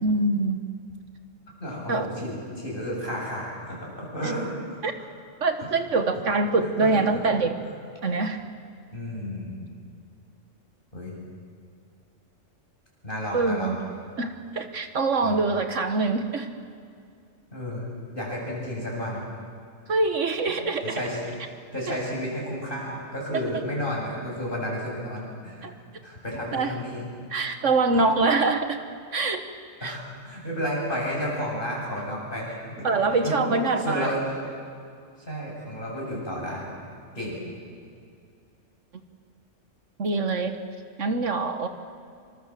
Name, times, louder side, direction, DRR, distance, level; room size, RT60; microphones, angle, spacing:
voice 1, 0.0-0.7 1.9-2.1 4.2-4.3 4.8-4.9 5.4-7.5 8.0-8.4 13.3-13.8 14.2-16.5 19.9-21.0 21.9-22.0 23.3-23.4 25.6-25.7 26.5-26.8 27.3-28.8 29.1-29.5 29.8-30.0 32.8-34.1 40.0-40.6 41.0-41.7, right 3 dB, 70° right, 8 dB, 1.7 m, -24 dB
voice 2, 1.6-4.8 6.6-7.2 7.6-7.7 8.9-9.6 10.9-11.2 13.0-13.8 15.2-15.3 17.5-19.2 20.8-21.2 21.7-25.7 26.0-27.0 27.9-28.0 29.8-32.9 33.2-33.5 33.8-34.4 35.2-36.7 37.1-37.4, equal, 40° left, -3 dB, 8.0 m, -32 dB
26.5 x 25.0 x 7.6 m, 2.3 s
omnidirectional pair, 1.3 m